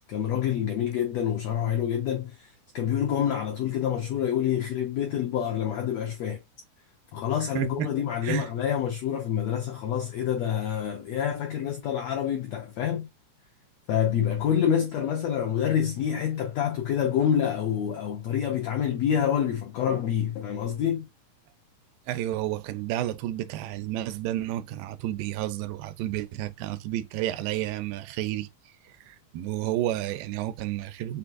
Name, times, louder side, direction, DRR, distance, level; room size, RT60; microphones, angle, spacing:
voice 1, 0.1-6.4 7.1-13.1 13.9-21.1, left 9 dB, 80° left, 1.5 m, -27 dB
voice 2, 7.6-7.9 8.2-8.5 22.1-28.5 28.8-31.2, right 13 dB, 90° right, 2.3 m, -31 dB
5.7 x 3.3 x 2.5 m
omnidirectional pair, 4.0 m